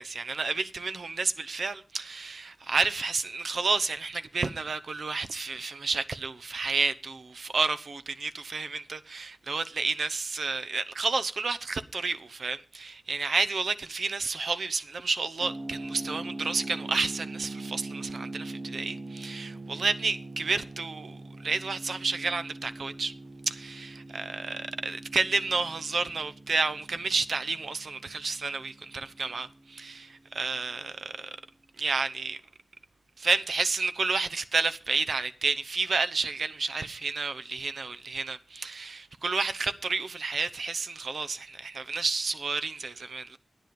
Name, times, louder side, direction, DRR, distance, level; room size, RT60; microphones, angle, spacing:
voice 1, 0.0-23.1 23.5-31.3 31.8-32.4 33.2-43.4, right 4 dB, 65° right, 0.8 m, -30 dB
sound 1, 15.4-30.2, right 2 dB, 35° right, 0.6 m, -42 dB
11.0 x 10.5 x 5.3 m
wide cardioid pair, 100°, 0 cm